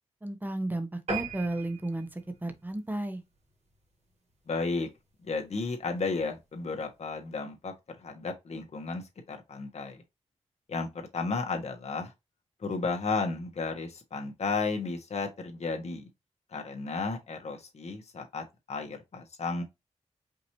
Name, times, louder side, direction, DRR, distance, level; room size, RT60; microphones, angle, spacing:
voice 1, 0.2-3.2, right 1 dB, 15° right, 0.9 m, -33 dB
sound 1, 1.1-3.8 4.3-4.5 4.9-5.0 5.3-5.4 5.7-5.8, right 4 dB, 65° right, 1.9 m, -39 dB
voice 2, 4.5-4.9 5.2-10.0 10.7-12.1 12.6-16.1 16.5-19.6, left 4 dB, 65° left, 1.4 m, -33 dB
5.2 x 2.7 x 3.1 m
wide cardioid pair, 95°, 12 cm